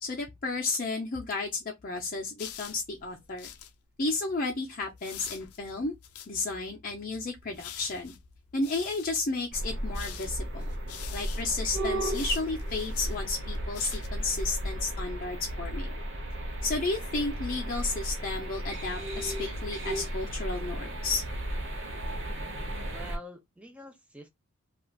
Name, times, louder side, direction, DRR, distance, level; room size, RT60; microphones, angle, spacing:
voice 1, 0.0-3.5 4.0-5.9 6.3-8.1 8.5-10.7 11.1-15.9 16.6-21.2, left 3 dB, 40° left, 0.6 m, -32 dB
sound 1, 2.4-3.7 5.0-6.3 7.2-9.1 9.8-14.1, left 10 dB, 85° left, 0.5 m, -46 dB
sound 2, 9.5-23.2, right 1 dB, 55° right, 0.9 m, -34 dB
voice 2, 22.9-24.3, equal, 5° right, 0.6 m, -46 dB
3.2 x 2.4 x 2.3 m
head